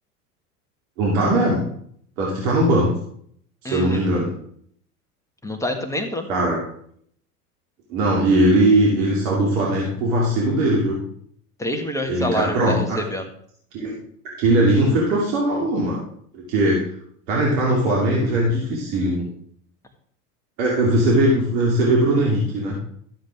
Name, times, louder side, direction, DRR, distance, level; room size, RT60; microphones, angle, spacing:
voice 1, 1.0-1.6 2.2-2.9 3.6-4.3 6.3-6.6 7.9-11.0 12.1-13.0 13.7-14.0 14.4-16.0 16.3-16.9 17.3-19.3 20.6-22.7, right 1 dB, 60° right, -3 dB, 2.9 m, -19 dB
voice 2, 3.6-4.0 5.4-6.3 11.6-13.3, equal, 5° left, 4 dB, 1.7 m, -26 dB
13.0 x 7.5 x 3.6 m, 0.64 s
hypercardioid pair, 90°, 47 cm